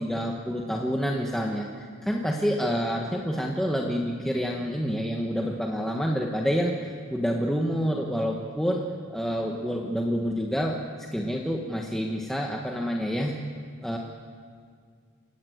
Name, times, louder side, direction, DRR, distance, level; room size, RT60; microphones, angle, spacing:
voice 1, 0.0-8.8 9.1-10.8 11.1-13.3 13.8-14.0, equal, ahead, 0 dB, 1.4 m, -28 dB
28.5 x 18.0 x 8.0 m, 2.1 s
head